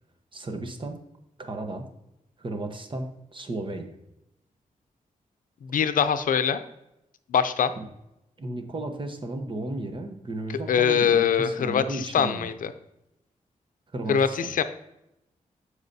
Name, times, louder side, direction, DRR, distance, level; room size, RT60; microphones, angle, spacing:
voice 1, 0.3-1.0 1.4-1.9 2.4-3.9 8.4-12.5 13.9-14.4, right 2 dB, 35° right, 5 dB, 1.0 m, -34 dB
voice 2, 5.6-6.6 7.3-7.7 10.7-12.7 14.1-14.6, left 7 dB, 80° left, 11 dB, 0.5 m, -23 dB
13.0 x 4.9 x 2.7 m, 0.87 s
wide cardioid pair, 110°, 14 cm